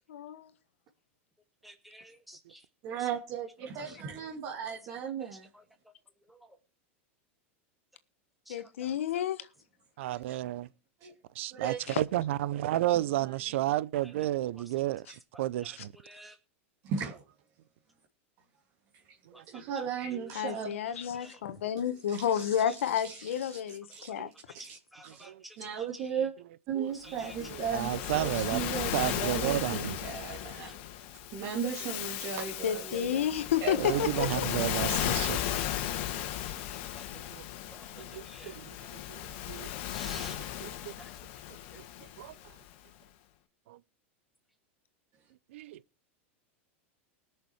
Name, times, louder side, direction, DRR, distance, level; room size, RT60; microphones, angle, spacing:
voice 1, 0.1-0.5 8.5-9.5 11.9-12.0 20.3-24.3 32.6-34.5, left 9 dB, 80° left, 1.4 m, -31 dB
voice 2, 1.6-2.6 8.5-8.6 14.5-14.6 15.6-15.7 16.0-16.3 19.3-19.4 21.1-21.4 24.6-25.9 27.0-27.3 36.2-36.3 37.1-37.2 38.3-38.6 39.9-40.4 41.0-41.1, right 1 dB, ahead, 2.3 m, -50 dB
voice 3, 2.8-5.5 10.3-10.4 11.0-11.1 11.5-11.8 13.2-13.4 15.1-15.2 16.8-17.1 19.5-20.7 22.1-22.3 23.0-23.3 23.9-24.1 24.5-24.8 25.0-25.2 25.6-26.3 26.7-30.8 31.3-33.3 33.6-34.0, right 7 dB, 45° right, 2.8 m, -36 dB
voice 4, 10.0-10.7 11.4-15.1 15.4-15.9 19.4-19.6 24.2-24.3 25.2-25.4 26.7-26.9 27.5-28.6 28.9-30.0 33.8-35.4 37.3-37.4 38.0-38.5 38.9-39.2 39.5-39.7 40.6-40.7 42.2-42.3 43.7-43.8 45.5-45.8, right 14 dB, 70° right, 0.6 m, -32 dB
Waves surf, 27.1-42.6, left 11 dB, 60° left, 1.8 m, -36 dB
20.0 x 6.7 x 4.7 m
hypercardioid pair, 115°, 7 cm